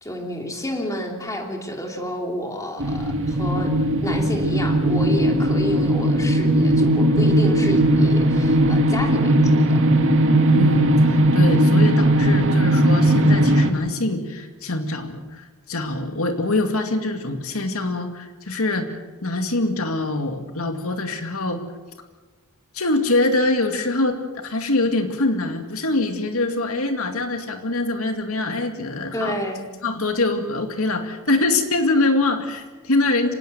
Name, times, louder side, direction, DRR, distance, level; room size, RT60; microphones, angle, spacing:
voice 1, 0.0-3.7 4.0-9.8 29.1-29.7, equal, 15° left, 2 dB, 3.0 m, -30 dB
sound 1, 2.8-13.7, right 1 dB, 60° right, 2.3 m, -18 dB
voice 2, 10.5-18.9 19.2-21.6 22.7-24.2 24.4-29.3 29.8-33.3, left 2 dB, 75° left, 6 dB, 2.3 m, -24 dB
25.5 x 19.0 x 7.8 m, 1.3 s
head